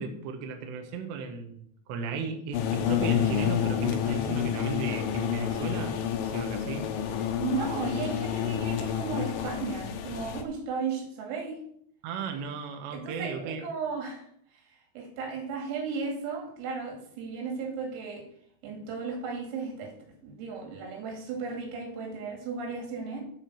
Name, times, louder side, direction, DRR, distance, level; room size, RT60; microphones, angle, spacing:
voice 1, 0.0-6.0 6.2-6.9 12.0-13.6, right 5 dB, 70° right, 4 dB, 3.1 m, -35 dB
sound 1, 2.5-10.4, left 9 dB, 85° left, 2.0 m, -29 dB
voice 2, 7.4-11.6 12.9-14.3 14.9-18.3 18.6-20.0 20.2-23.2, right 5 dB, 90° right, 2 dB, 5.0 m, -35 dB
13.0 x 5.0 x 6.4 m, 0.67 s
omnidirectional pair, 5.8 m